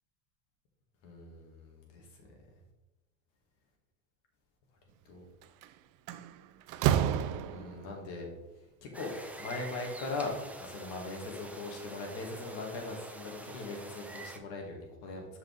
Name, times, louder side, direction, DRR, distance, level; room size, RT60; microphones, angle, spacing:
voice 1, 1.0-2.3 5.1-5.2 7.5-8.3 8.8-15.3, left 3 dB, 65° left, 1 dB, 2.4 m, -40 dB
Slam, 5.4-5.7 6.1-7.9, right 10 dB, 45° right, 0.5 m, -30 dB
sound 1, 8.9-14.4, right 1 dB, 5° right, 0.6 m, -46 dB
7.1 x 5.7 x 3.6 m, 1.0 s
supercardioid pair, 115°, 45 cm